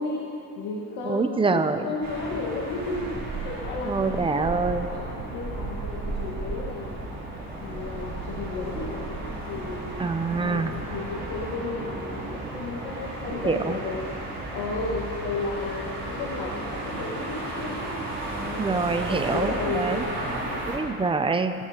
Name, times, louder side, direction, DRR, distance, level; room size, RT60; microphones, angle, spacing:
voice 1, 0.0-7.0 7.6-10.1 10.4-17.8 18.4-20.7, left 3 dB, 70° left, -2 dB, 1.6 m, -34 dB
voice 2, 1.0-1.8 3.9-4.9 10.0-10.7 13.5-13.8 18.6-20.0 20.7-21.5, right 4 dB, 15° right, 8 dB, 0.4 m, -25 dB
sound 1, 2.0-20.8, right 2 dB, 30° right, 3.4 m, -34 dB
19.0 x 15.5 x 2.9 m, 2.8 s
cardioid pair, 150°, 38 cm